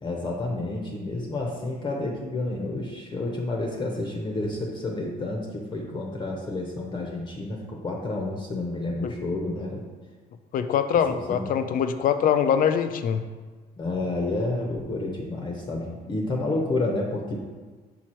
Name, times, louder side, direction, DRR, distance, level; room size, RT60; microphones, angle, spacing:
voice 1, 0.0-9.8 11.3-11.5 13.8-17.4, left 2 dB, 25° left, 0 dB, 0.8 m, -30 dB
voice 2, 10.5-13.2, left 8 dB, 55° left, 9 dB, 0.5 m, -23 dB
5.6 x 4.6 x 4.3 m, 1.4 s
cardioid pair, 110°, 17 cm